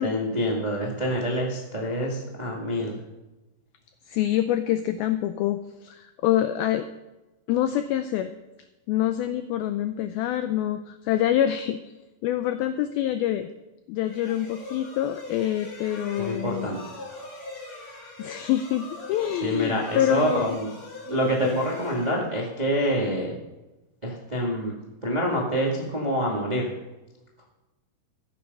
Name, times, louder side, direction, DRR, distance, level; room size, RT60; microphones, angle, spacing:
voice 1, 0.0-3.0 16.2-16.8 19.4-20.7 21.1-23.3 24.0-24.7 25.0-26.7, equal, 85° right, -3 dB, 0.4 m, -26 dB
voice 2, 4.1-6.8 7.5-8.3 8.9-11.8 12.2-13.5 13.9-16.7 18.2-20.6 21.1-21.6, left 12 dB, 85° left, 9 dB, 2.1 m, -26 dB
sound 1, 14.0-22.8, left 2 dB, 35° left, 3.4 m, -42 dB
14.5 x 9.0 x 5.4 m, 1.1 s
omnidirectional pair, 4.9 m